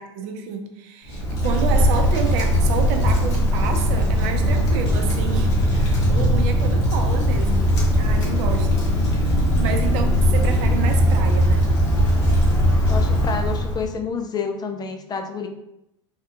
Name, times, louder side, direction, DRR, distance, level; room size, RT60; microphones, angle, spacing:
voice 1, 0.0-7.7 8.0-8.8 9.6-11.7, right 6 dB, 60° right, 5 dB, 0.6 m, -29 dB
Wind, 1.1-13.9, equal, 65° left, 1.1 m, -19 dB
voice 2, 12.9-15.5, left 5 dB, 25° left, 6 dB, 0.3 m, -29 dB
3.4 x 2.3 x 2.8 m, 0.86 s
hypercardioid pair, 90°, 16 cm